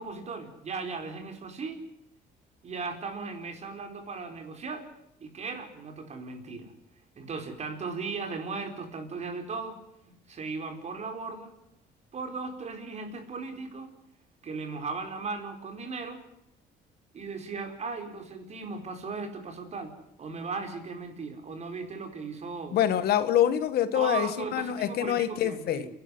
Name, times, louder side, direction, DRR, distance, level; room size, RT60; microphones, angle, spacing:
voice 1, 0.0-1.8 2.6-4.8 5.2-6.7 7.2-9.8 10.0-11.5 12.1-13.9 14.4-16.2 17.1-19.9 20.2-22.8 23.9-25.9, right 4 dB, 40° right, 6 dB, 4.5 m, -37 dB
voice 2, 22.7-25.9, left 10 dB, 70° left, 12 dB, 1.6 m, -26 dB
29.0 x 11.5 x 9.6 m, 0.82 s
cardioid pair, 110°, 17 cm